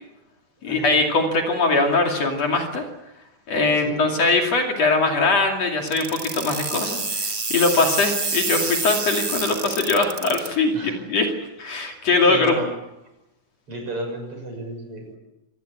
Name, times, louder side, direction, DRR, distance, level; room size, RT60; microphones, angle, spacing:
voice 1, 0.6-2.8 3.5-11.3 11.6-12.5, left 3 dB, 55° left, 3 dB, 3.7 m, -21 dB
sound 1, 5.9-10.5, right 3 dB, 90° right, 0.4 m, -27 dB
voice 2, 12.2-12.7 13.7-15.2, right 1 dB, 45° right, 4 dB, 7.3 m, -33 dB
25.5 x 19.0 x 8.6 m, 0.93 s
omnidirectional pair, 3.6 m